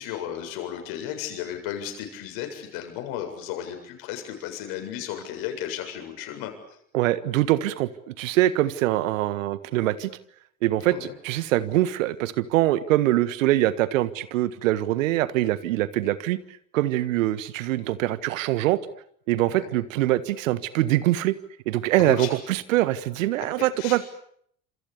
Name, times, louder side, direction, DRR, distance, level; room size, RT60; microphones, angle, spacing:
voice 1, 0.0-6.8 10.8-11.1 19.4-19.7 22.0-22.3 23.8-24.0, left 10 dB, 60° left, 5 dB, 7.7 m, -34 dB
voice 2, 6.9-10.1 10.6-16.4 16.7-18.8 19.3-21.3 21.6-24.1, right 15 dB, 70° right, 15 dB, 1.7 m, -23 dB
29.5 x 27.0 x 7.0 m, 0.68 s
figure-of-eight pair, 65°, 41 cm